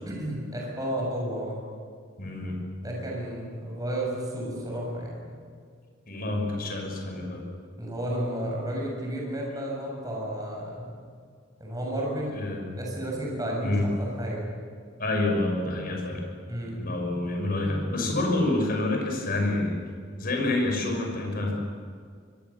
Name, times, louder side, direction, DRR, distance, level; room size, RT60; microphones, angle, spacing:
voice 1, 0.1-1.6 2.8-5.3 7.8-10.9 11.6-12.5 12.7-14.4 16.5-16.7, right 1 dB, 20° right, -2 dB, 7.2 m, -32 dB
voice 2, 2.2-2.6 6.1-7.4 12.3-12.7 13.6-13.9 15.0-16.3 16.8-19.8 20.2-21.5, left 2 dB, 50° left, 2 dB, 6.1 m, -27 dB
25.5 x 22.5 x 7.3 m, 2.1 s
head